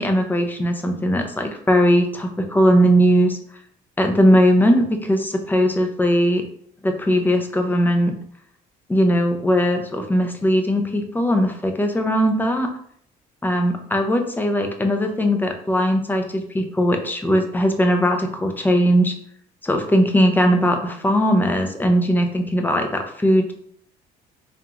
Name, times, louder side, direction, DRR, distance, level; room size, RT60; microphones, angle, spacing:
voice 1, 0.0-3.4 4.0-6.4 6.8-8.1 8.9-12.7 13.4-19.1 19.6-23.5, equal, 10° left, 4 dB, 0.6 m, -19 dB
3.6 x 3.1 x 3.6 m, 0.64 s
cardioid pair, 110°, 17 cm